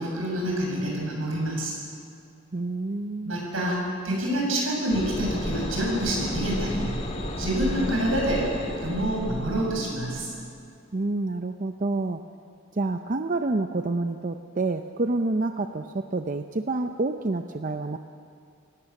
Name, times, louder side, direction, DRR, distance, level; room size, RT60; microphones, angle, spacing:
voice 1, 0.0-1.8 3.3-6.9 7.4-8.5 8.8-10.3, right 1 dB, 75° right, -2 dB, 7.5 m, -27 dB
voice 2, 2.5-3.4 10.9-12.2 12.7-18.0, right 2 dB, 40° right, 7 dB, 0.6 m, -28 dB
sound 1, 4.9-10.2, left 1 dB, 30° left, 2.3 m, -33 dB
27.0 x 17.5 x 7.1 m, 2.4 s
head